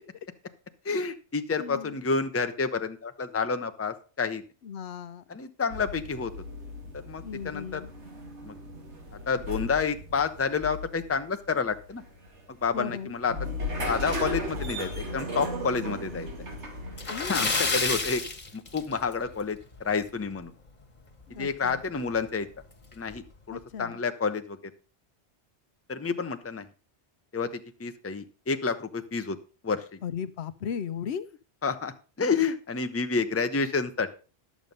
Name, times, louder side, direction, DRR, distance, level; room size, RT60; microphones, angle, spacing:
voice 1, 0.8-4.4 5.3-6.3 7.1-7.8 8.4-8.5 9.3-12.0 12.6-13.3 13.8-16.3 17.3-18.2 18.5-20.5 21.3-22.5 23.0-24.6 25.9-26.7 27.3-29.4 29.6-30.0 31.6-31.9 32.2-34.1, left 5 dB, 15° left, 8 dB, 0.7 m, -29 dB
voice 2, 1.6-2.0 4.6-5.2 7.2-7.9 12.7-13.2 17.1-17.6 21.3-21.8 23.5-24.0 30.0-31.3, left 7 dB, 75° left, 14 dB, 0.9 m, -36 dB
sound 1, 5.7-17.4, left 1 dB, 85° right, 2.5 m, -37 dB
Splash splatter, 16.9-19.3 19.6-19.8 20.2-20.3 21.8-21.9 22.2-22.3 22.9-23.2, left 3 dB, 40° left, 1.5 m, -29 dB
11.0 x 7.3 x 5.3 m, 0.35 s
omnidirectional pair, 1.1 m